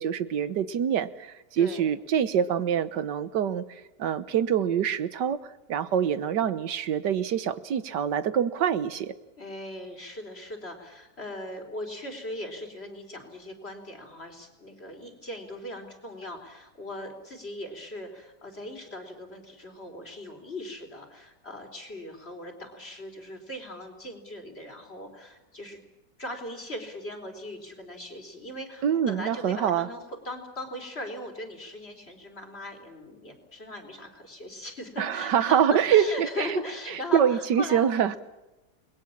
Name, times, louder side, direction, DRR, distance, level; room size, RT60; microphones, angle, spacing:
voice 1, 0.0-5.4 5.7-9.1 28.8-29.9 35.0-36.6 37.1-38.2, right 8 dB, 90° right, 13 dB, 1.7 m, -25 dB
voice 2, 1.6-1.9 9.4-25.8 26.2-37.8, left 1 dB, 35° left, 4 dB, 4.4 m, -39 dB
29.5 x 21.0 x 7.3 m, 1.0 s
omnidirectional pair, 1.8 m